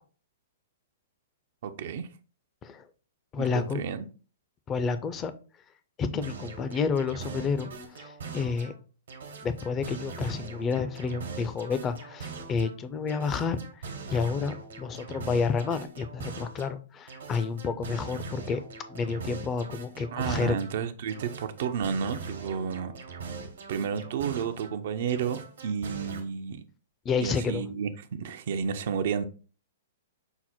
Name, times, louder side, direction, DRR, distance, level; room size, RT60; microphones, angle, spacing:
voice 1, 1.6-2.1 3.4-4.1 20.1-22.9 23.7-26.6 27.2-29.3, right 7 dB, 60° right, 0.5 m, -31 dB
voice 2, 3.3-3.8 4.7-5.3 6.0-8.7 9.4-13.6 14.1-18.6 18.9-20.6 27.0-27.6, left 5 dB, 25° left, 0.5 m, -30 dB
sound 1, 6.2-8.8 9.1-12.8 13.1-16.7 17.1-20.7 21.1-24.8 25.1-26.2, right 4 dB, 75° right, 1.1 m, -41 dB
5.8 x 2.1 x 4.2 m
hypercardioid pair, 120°, 0 cm